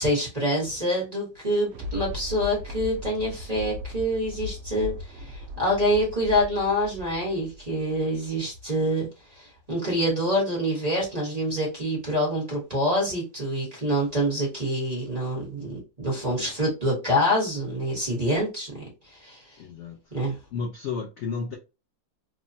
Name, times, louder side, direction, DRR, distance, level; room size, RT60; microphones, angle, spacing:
voice 1, 0.0-19.4 20.1-20.4, equal, 30° right, 0.9 m, -26 dB
Thunder, 1.3-8.8 9.3-9.4, left 1 dB, 90° right, 0.6 m, -38 dB
voice 2, 19.6-20.1 20.5-21.6, left 5 dB, 80° left, 0.6 m, -33 dB
3.2 x 2.1 x 2.6 m
omnidirectional pair, 1.9 m